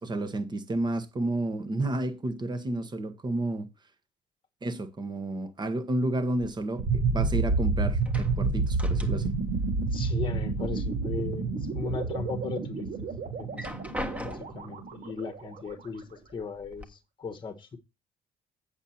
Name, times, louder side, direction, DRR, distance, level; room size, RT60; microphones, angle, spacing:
voice 1, 0.0-3.7 4.6-9.3, right 2 dB, 25° right, 1.3 m, -31 dB
sound 1, 6.4-7.6 7.9-9.5 9.8-10.8 11.2-12.0 12.5-12.6 13.4-14.8 15.7-15.8 16.2-16.8, left 1 dB, 10° right, 1.4 m, -41 dB
sound 2, 6.8-15.7, right 4 dB, 65° right, 3.6 m, -29 dB
voice 2, 9.9-13.1 13.4-13.7 14.2-17.8, left 4 dB, 30° left, 1.3 m, -37 dB
8.1 x 7.2 x 4.3 m
cardioid pair, 110°, 17 cm